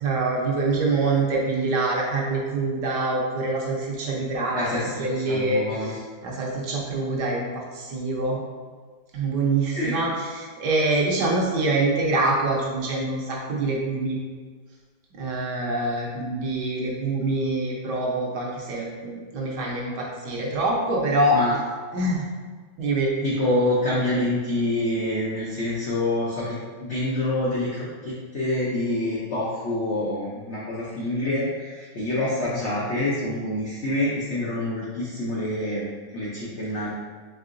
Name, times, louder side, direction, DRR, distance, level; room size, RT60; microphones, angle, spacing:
voice 1, 0.0-8.4 9.1-14.2 15.2-21.4 21.9-22.3 22.8-23.1, right 2 dB, 65° right, -3 dB, 1.3 m, -25 dB
voice 2, 4.5-5.9 9.8-10.1 21.3-21.5 23.2-36.9, left 1 dB, 75° left, -6 dB, 0.6 m, -27 dB
4.7 x 3.6 x 2.5 m, 1.5 s
omnidirectional pair, 2.1 m